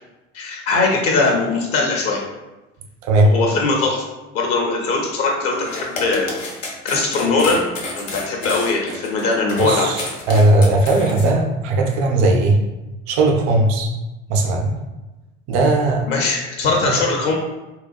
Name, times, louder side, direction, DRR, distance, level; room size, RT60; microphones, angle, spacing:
voice 1, 0.3-2.2 3.2-4.1 4.3-6.3 6.8-7.6 7.9-9.9 16.1-17.3, left 3 dB, 40° left, -1 dB, 0.6 m, -20 dB
sound 1, 5.5-11.3, left 2 dB, 80° left, 0.7 m, -30 dB
voice 2, 9.6-10.0 10.3-12.6 13.1-13.9 14.3-14.7 15.5-16.0, right 2 dB, 50° right, 2 dB, 0.5 m, -17 dB
3.9 x 2.2 x 2.3 m, 1.1 s
figure-of-eight pair, 65°, 38 cm